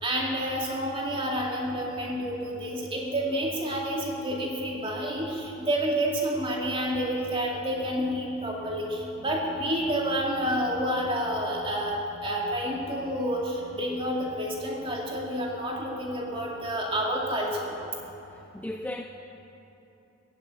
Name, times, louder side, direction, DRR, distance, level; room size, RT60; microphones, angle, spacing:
voice 1, 0.0-17.8, equal, 25° right, -2 dB, 2.4 m, -29 dB
voice 2, 18.3-19.0, left 1 dB, 5° left, 3 dB, 0.5 m, -36 dB
15.0 x 10.5 x 8.9 m, 2.9 s
head